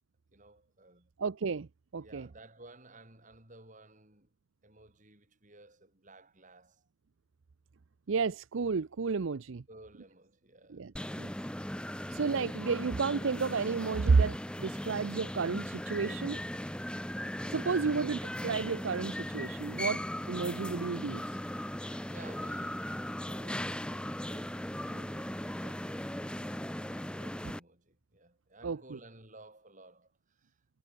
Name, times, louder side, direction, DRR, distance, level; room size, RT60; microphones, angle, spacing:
voice 1, 0.3-1.1 2.0-4.3 4.6-6.9 9.7-11.3 17.6-18.2 22.0-23.0 23.2-30.6, right 2 dB, 35° right, 6.2 m, -56 dB
voice 2, 1.2-1.7 1.9-2.3 8.1-9.6 10.7-10.9 11.2-11.3 12.1-16.4 17.5-21.4 28.6-29.0, right 4 dB, 65° right, 0.5 m, -31 dB
sound 1, 11.0-27.6, left 1 dB, 5° left, 1.1 m, -38 dB
head